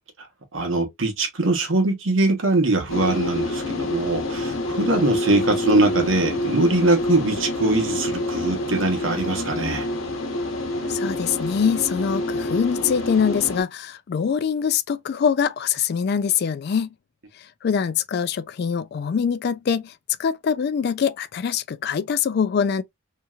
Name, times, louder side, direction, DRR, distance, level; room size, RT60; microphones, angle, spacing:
voice 1, 0.5-9.9, right 2 dB, 75° right, 1.0 m, -22 dB
sound 1, 2.9-13.6, left 1 dB, 85° left, 1.0 m, -27 dB
voice 2, 10.9-16.9 17.6-19.9 20.2-22.8, left 7 dB, 50° left, 0.3 m, -23 dB
2.9 x 2.7 x 2.3 m
head